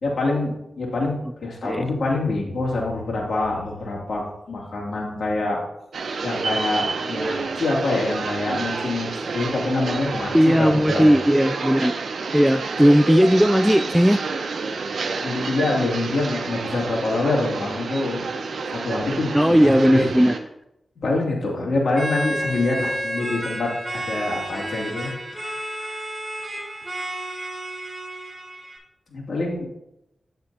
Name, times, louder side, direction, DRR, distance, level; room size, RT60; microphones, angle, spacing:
voice 1, 0.0-5.6 6.2-11.1 15.2-18.2 18.6-19.3 19.6-20.1 21.0-25.2 29.1-29.7, left 2 dB, 70° left, -3 dB, 2.5 m, -25 dB
sound 1, 5.9-20.4, right 4 dB, 85° right, 0.8 m, -29 dB
voice 2, 10.3-11.9 12.3-14.2 19.3-20.4, equal, ahead, 10 dB, 0.3 m, -17 dB
sound 2, 21.9-28.8, right 1 dB, 30° right, 2.7 m, -31 dB
9.4 x 7.8 x 2.8 m, 0.84 s
cardioid pair, 60°, 0 cm